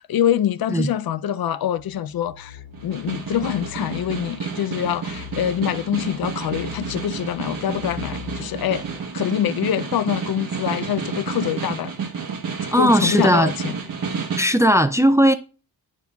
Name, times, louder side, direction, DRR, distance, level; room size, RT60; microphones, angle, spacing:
voice 1, 0.0-8.8 9.1-11.9 12.8-13.7, left 10 dB, 65° left, 0.5 m, -25 dB
sound 1, 1.8-9.0, left 8 dB, 85° left, 1.5 m, -41 dB
Snare drum, 2.7-14.6, right 5 dB, 60° right, 1.1 m, -31 dB
voice 2, 12.7-13.5 14.4-15.3, equal, 10° right, 0.4 m, -17 dB
9.2 x 5.4 x 2.3 m
cardioid pair, 80°, 39 cm